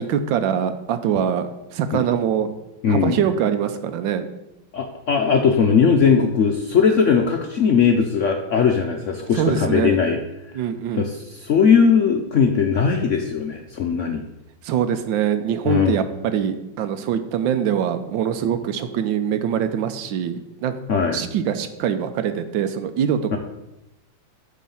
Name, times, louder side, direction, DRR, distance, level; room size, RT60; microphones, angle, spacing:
voice 1, 0.0-2.5 2.9-4.3 9.3-10.0 10.5-11.0 14.6-20.7 21.1-23.4, right 8 dB, 90° right, 10 dB, 1.4 m, -23 dB
voice 2, 2.8-3.2 4.7-10.2 10.9-14.2 15.6-15.9 20.9-21.2 23.3-23.4, left 6 dB, 65° left, 3 dB, 0.7 m, -19 dB
9.2 x 3.7 x 7.1 m, 0.91 s
omnidirectional pair, 2.0 m